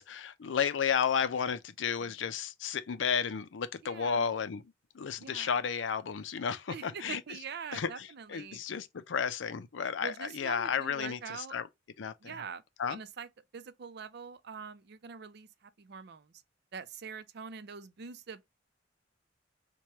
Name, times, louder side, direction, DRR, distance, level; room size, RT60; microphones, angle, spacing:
voice 1, 0.0-4.6 4.9-7.2 7.7-11.7 12.0-12.4 12.8-13.0, left 7 dB, 85° left, 0.5 m, -33 dB
voice 2, 3.8-4.3 5.2-5.5 6.7-8.6 10.0-11.5 12.2-12.6 12.9-13.3 13.5-16.4 16.7-18.5, right 6 dB, 60° right, 0.5 m, -44 dB
4.6 x 2.2 x 2.8 m
head